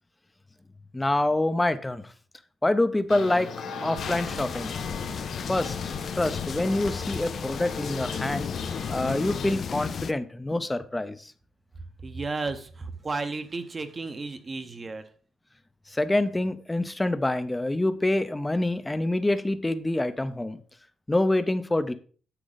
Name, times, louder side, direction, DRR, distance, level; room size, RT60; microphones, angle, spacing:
voice 1, 0.9-2.0 2.6-3.5 3.8-4.7 5.5-5.8 6.1-8.5 8.9-11.2 15.9-20.6 21.1-21.9, left 1 dB, 10° left, 0.7 m, -26 dB
sound 1, 3.1-9.5, left 5 dB, 70° left, 2.5 m, -37 dB
sound 2, 4.0-10.1, left 6 dB, 45° left, 0.5 m, -34 dB
voice 2, 12.0-15.1, right 3 dB, 25° right, 0.9 m, -33 dB
10.0 x 7.5 x 4.0 m
cardioid pair, 145°, 0 cm